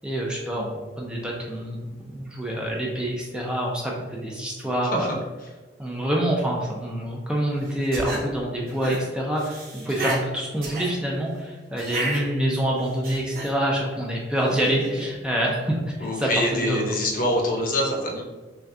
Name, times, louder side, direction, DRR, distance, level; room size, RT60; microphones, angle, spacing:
voice 1, 0.0-5.1 5.8-16.9, right 1 dB, 5° right, -3 dB, 0.4 m, -26 dB
sound 1, 7.7-8.2 8.7-9.0 9.3-10.2 10.6-10.9 11.8-12.2 12.8-13.5 14.4-15.1, right 1 dB, 50° right, 1.0 m, -32 dB
voice 2, 16.0-18.2, left 1 dB, 50° left, 0 dB, 0.8 m, -25 dB
5.7 x 2.3 x 2.6 m, 1.3 s
head